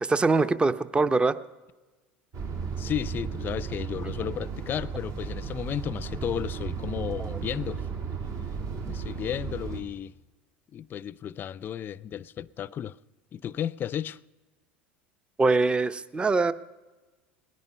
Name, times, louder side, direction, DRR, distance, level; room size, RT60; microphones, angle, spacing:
voice 1, 0.0-1.4 7.2-7.4 15.4-16.5, right 3 dB, 20° right, 0.6 m, -23 dB
sound 1, 2.3-9.8, right 5 dB, 60° right, 2.3 m, -34 dB
voice 2, 2.8-7.9 8.9-10.1 10.7-13.0 13.3-14.2, left 10 dB, 35° left, 0.4 m, -33 dB
19.0 x 10.5 x 5.5 m
hypercardioid pair, 85°, 6 cm